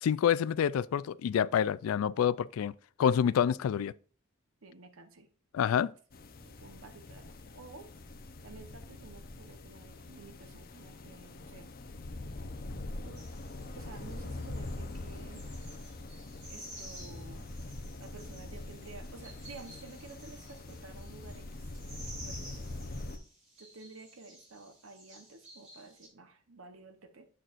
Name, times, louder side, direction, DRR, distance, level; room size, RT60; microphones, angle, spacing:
voice 1, 0.0-2.7 3.0-3.9 5.5-5.9, left 8 dB, 90° left, 0.3 m, -27 dB
voice 2, 4.6-5.3 5.7-5.9 6.4-7.9 8.4-11.7 13.0-13.3 13.7-15.5 16.5-17.5 18.0-21.7 22.1-22.8 23.6-27.3, right 3 dB, 85° right, 0.9 m, -52 dB
sound 1, 6.1-23.2, left 2 dB, 45° left, 0.7 m, -43 dB
sound 2, 13.2-26.1, right 1 dB, 35° right, 3.1 m, -53 dB
7.6 x 6.7 x 2.5 m
head